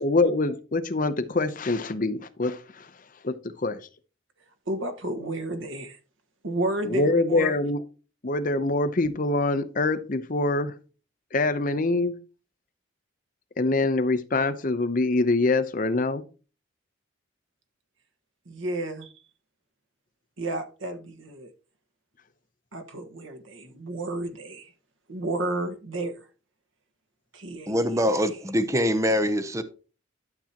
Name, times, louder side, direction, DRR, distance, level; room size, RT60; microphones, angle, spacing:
voice 1, 0.0-2.9 3.2-3.4 3.6-3.8 6.8-7.8 8.2-10.7 11.3-12.2 13.6-16.2, left 2 dB, 40° left, 0.7 m, -24 dB
voice 2, 4.7-6.0 6.4-7.6 18.4-19.1 20.4-21.5 22.7-24.7 25.1-26.3 27.3-28.1, right 2 dB, 75° right, 1.4 m, -32 dB
voice 3, 27.7-29.6, equal, 15° right, 0.6 m, -24 dB
12.0 x 7.1 x 2.9 m
head